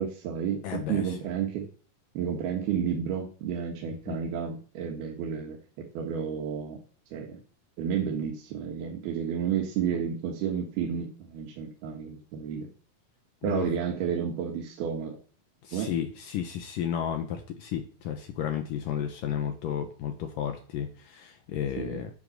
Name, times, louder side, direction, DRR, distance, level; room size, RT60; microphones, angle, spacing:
voice 1, 0.0-1.7 2.1-6.8 7.1-7.4 7.8-12.7 13.4-15.2 15.7-15.9 21.8-22.0, right 8 dB, 85° right, 0 dB, 3.5 m, -31 dB
voice 2, 0.6-1.2 4.1-4.2 13.4-13.7 15.6-22.1, left 9 dB, 70° left, 6 dB, 2.5 m, -33 dB
10.5 x 8.9 x 6.6 m, 0.42 s
omnidirectional pair, 4.3 m